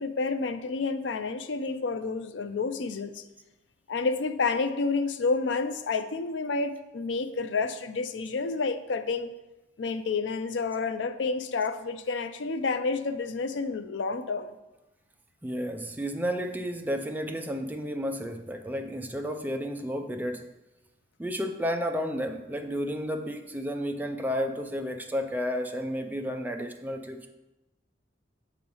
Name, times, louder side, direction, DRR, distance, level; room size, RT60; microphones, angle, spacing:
voice 1, 0.0-3.2 3.9-9.3 9.8-14.5, left 4 dB, 80° left, 10 dB, 0.4 m, -29 dB
voice 2, 15.4-20.5 21.2-27.3, equal, 10° right, 5 dB, 0.4 m, -32 dB
7.7 x 3.1 x 5.4 m, 0.99 s
head